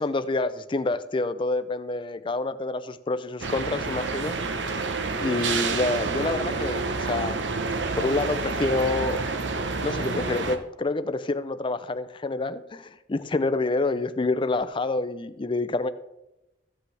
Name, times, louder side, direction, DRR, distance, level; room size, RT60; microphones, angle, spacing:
voice 1, 0.0-4.4 5.2-7.4 8.0-9.3 9.8-15.9, left 2 dB, 30° left, 12 dB, 0.5 m, -27 dB
sound 1, 3.4-10.6, right 3 dB, 80° right, 0.8 m, -28 dB
14.5 x 8.3 x 3.3 m, 0.93 s
head